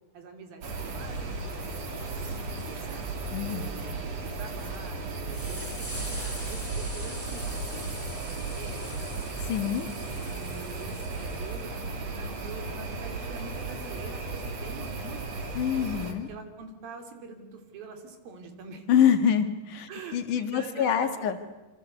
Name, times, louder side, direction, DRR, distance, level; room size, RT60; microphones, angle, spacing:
voice 1, 0.1-3.0 3.4-9.2 10.1-15.2 16.3-18.9 19.9-21.3, right 4 dB, 70° right, 6 dB, 4.8 m, -45 dB
sound 1, 0.6-16.1, right 3 dB, 45° right, 4.0 m, -35 dB
sound 2, 2.4-2.5 2.8-3.0 3.6-4.3 4.9-5.0 5.3-11.7 13.8-13.9 15.2-15.3, equal, 5° right, 4.6 m, -43 dB
voice 2, 3.3-3.8 9.5-9.9 15.5-16.3 18.9-21.4, left 8 dB, 60° left, 8 dB, 3.3 m, -25 dB
27.5 x 26.0 x 8.2 m, 1.1 s
omnidirectional pair, 4.3 m